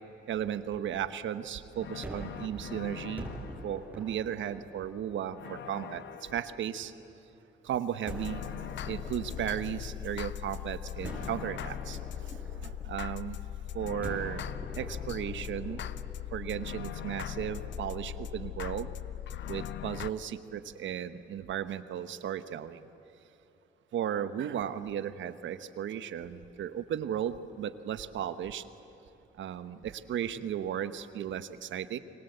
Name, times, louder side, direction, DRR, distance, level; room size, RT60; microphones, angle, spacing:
voice 1, 0.3-3.4 3.6-6.0 6.3-6.9 7.6-8.4 8.9-12.0 12.6-13.4 13.7-14.4 14.8-15.8 16.3-18.9 19.5-22.8 23.9-28.6 29.4-32.0, right 9 dB, 70° right, 12 dB, 1.2 m, -35 dB
sound 1, 1.8-3.8 5.3-6.6 8.1-20.1, left 11 dB, 65° left, 0.7 m, -40 dB
Gunshot gunfire, 2.0-7.1 8.1-10.5 11.0-13.5 14.0-19.2, right 1 dB, 5° right, 6.0 m, -47 dB
29.5 x 24.0 x 8.1 m, 2.9 s
cardioid pair, 90°, 20 cm